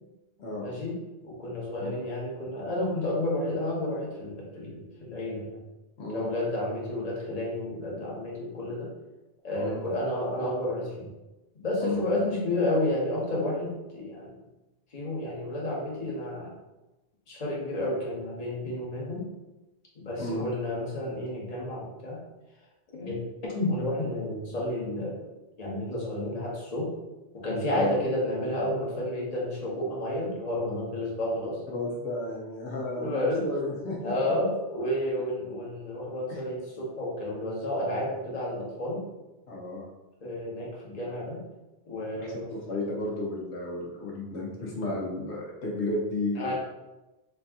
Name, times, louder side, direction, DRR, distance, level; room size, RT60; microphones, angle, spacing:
voice 1, 0.6-1.0 1.2-5.6 6.1-8.9 9.4-11.1 11.5-14.4 14.9-16.5 17.3-19.3 20.0-22.2 22.9-23.2 23.5-25.2 25.6-26.9 27.3-31.6 32.9-33.5 34.0-39.0 40.2-41.5 41.9-42.5 46.4-46.5, left 1 dB, 40° left, -4 dB, 1.0 m, -31 dB
voice 2, 6.0-6.3 9.5-9.8 11.8-12.1 20.2-20.5 27.7-27.9 31.7-34.1 36.3-36.4 39.5-39.9 42.1-46.5, left 2 dB, 80° left, -3 dB, 1.0 m, -33 dB
3.4 x 2.7 x 3.5 m, 1.0 s
omnidirectional pair, 1.1 m